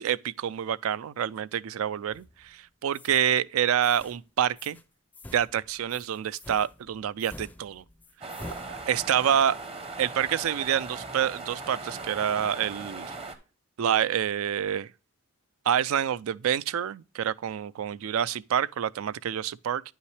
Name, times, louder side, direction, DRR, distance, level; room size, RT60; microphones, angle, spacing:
voice 1, 0.0-4.8 5.3-7.8 8.7-9.6 10.0-13.1 13.8-14.9 15.7-19.8, right 9 dB, 65° right, 0.3 m, -27 dB
sound 1, 2.1-2.5 2.9-3.3 3.8-4.2 4.6-4.8 5.1-9.2, left 1 dB, 10° left, 0.4 m, -47 dB
sound 2, 8.2-13.4, right 3 dB, 25° right, 0.8 m, -39 dB
9.8 x 5.5 x 3.2 m
head